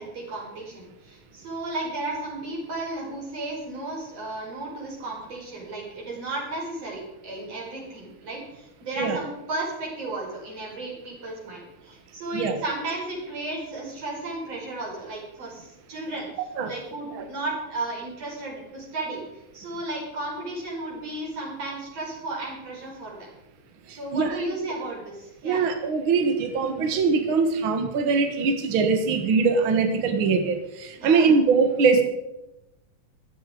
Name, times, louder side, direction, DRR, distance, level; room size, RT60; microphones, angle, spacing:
voice 1, 0.0-16.3 16.6-19.2 19.5-23.3 23.9-25.7 31.0-31.3, right 2 dB, 40° right, -2 dB, 6.0 m, -34 dB
voice 2, 23.9-24.4 25.4-32.0, right 5 dB, 70° right, 6 dB, 1.2 m, -22 dB
15.5 x 13.0 x 5.0 m, 0.92 s
omnidirectional pair, 4.5 m